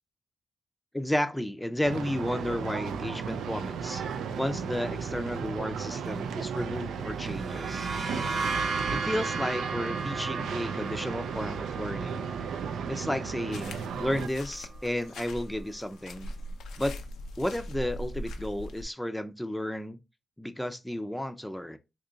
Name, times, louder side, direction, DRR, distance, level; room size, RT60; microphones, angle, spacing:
voice 1, 0.9-4.0 4.4-7.9 8.9-12.3 12.9-16.3 16.8-17.0 17.4-20.0 20.4-21.8, left 1 dB, 5° left, 0.5 m, -32 dB
sound 1, 1.8-14.3, right 6 dB, 85° right, 0.3 m, -35 dB
sound 2, 7.2-14.7, right 4 dB, 50° right, 0.6 m, -35 dB
sound 3, 13.5-18.8, left 1 dB, 90° left, 0.5 m, -41 dB
2.9 x 2.4 x 3.9 m
cardioid pair, 80°, 0 cm